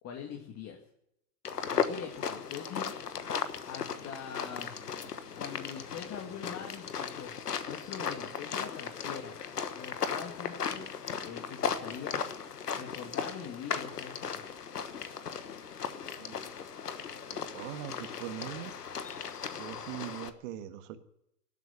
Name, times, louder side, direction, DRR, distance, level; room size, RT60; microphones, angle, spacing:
voice 1, 0.0-0.8 1.7-3.2 3.6-4.7 5.1-7.3 7.7-9.3 9.8-10.9 11.2-12.3 12.7-14.4, left 7 dB, 30° left, 2 dB, 2.2 m, -43 dB
sound 1, 1.4-20.3, left 6 dB, 90° left, 1.3 m, -37 dB
voice 2, 17.3-18.8 19.5-21.0, right 12 dB, 55° right, 8 dB, 1.6 m, -42 dB
18.0 x 8.3 x 9.4 m, 0.81 s
hypercardioid pair, 105°, 46 cm